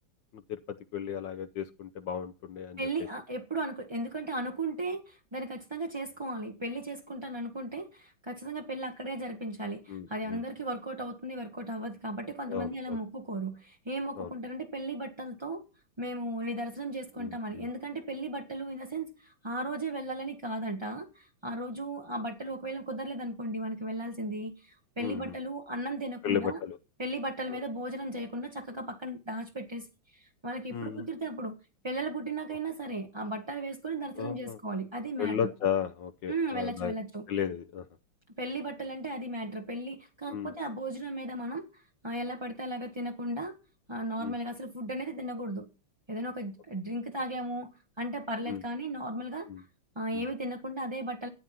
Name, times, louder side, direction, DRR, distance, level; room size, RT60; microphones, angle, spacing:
voice 1, 0.9-2.8 9.9-10.4 12.5-13.0 14.2-14.3 17.2-17.7 25.0-25.3 26.2-26.8 27.5-27.6 30.7-31.1 34.2-34.6 35.2-36.9 37.3-37.8 40.3-40.5 44.2-44.3 48.5-48.6 49.5-49.6 50.1-50.2, left 8 dB, 70° left, 1.4 m, -34 dB
voice 2, 2.8-15.6 16.0-26.6 27.0-29.9 30.1-31.6 31.8-35.5 36.3-37.2 38.4-43.5 43.9-45.7 46.1-47.7 48.0-49.5 49.9-51.3, right 1 dB, 20° right, 0.8 m, -36 dB
13.5 x 9.1 x 5.6 m
omnidirectional pair, 2.2 m